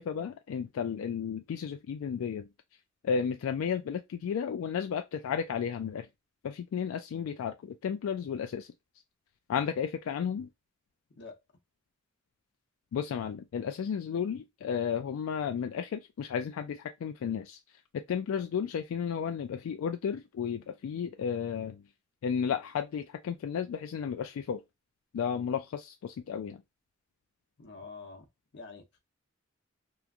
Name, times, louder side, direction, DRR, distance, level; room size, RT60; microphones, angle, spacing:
voice 1, 0.0-2.5 3.0-6.1 6.4-8.7 9.5-10.5 12.9-17.6 17.9-21.8 22.2-24.6 25.1-26.6, left 7 dB, 85° left, 0.3 m, -33 dB
voice 2, 27.6-28.3 28.5-29.0, left 4 dB, 60° left, 0.7 m, -47 dB
2.9 x 2.4 x 2.4 m
head